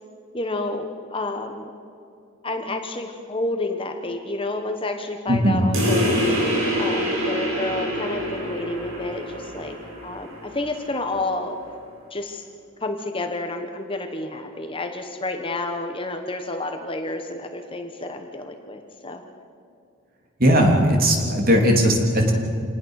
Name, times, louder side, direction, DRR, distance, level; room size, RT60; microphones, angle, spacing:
voice 1, 0.3-1.7 2.4-6.5 6.8-9.8 10.0-11.6 12.1-12.4 12.8-19.2, left 2 dB, 25° left, 5 dB, 1.3 m, -30 dB
voice 2, 5.3-5.6 20.4-22.3, equal, 45° right, 1 dB, 3.3 m, -18 dB
sound 1, 5.7-10.8, equal, 75° right, 7.3 m, -26 dB
27.0 x 19.0 x 6.5 m, 2.5 s
head